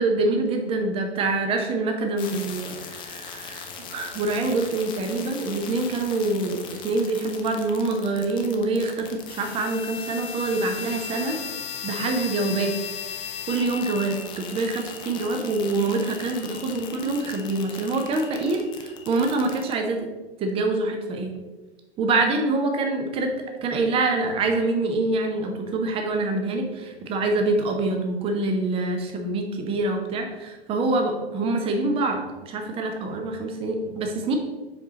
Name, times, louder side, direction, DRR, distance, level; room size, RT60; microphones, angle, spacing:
voice 1, 0.0-11.4 11.8-12.8 13.5-20.1 20.4-21.3 22.0-23.3 23.6-34.3, right 2 dB, 15° right, 4 dB, 0.7 m, -25 dB
sound 1, 2.2-19.8, left 7 dB, 15° left, 0.5 m, -37 dB
7.2 x 4.8 x 2.9 m, 1.2 s
figure-of-eight pair, 105°, 32 cm